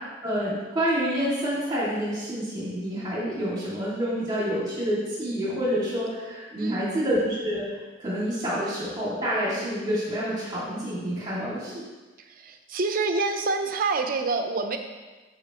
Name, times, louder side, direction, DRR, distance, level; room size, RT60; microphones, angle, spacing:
voice 1, 0.2-7.7 8.0-11.8, equal, 20° right, -8 dB, 2.2 m, -28 dB
voice 2, 6.6-7.0 12.2-14.8, right 3 dB, 50° right, 5 dB, 0.7 m, -27 dB
13.5 x 5.0 x 3.0 m, 1.3 s
head